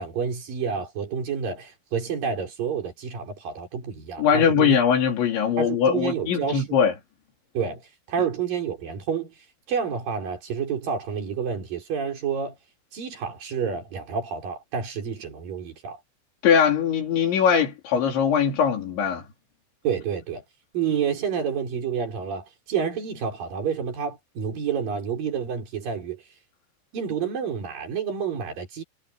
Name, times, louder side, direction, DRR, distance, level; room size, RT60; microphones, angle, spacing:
voice 1, 0.0-4.8 5.6-6.8 7.5-9.3 9.7-12.6 12.9-16.0 19.8-20.4 20.7-26.2 26.9-28.8, right 6 dB, 50° right, 6.3 m, -29 dB
voice 2, 4.2-6.9 16.4-19.2, left 7 dB, 75° left, 6.1 m, -21 dB
omnidirectional pair, 5.3 m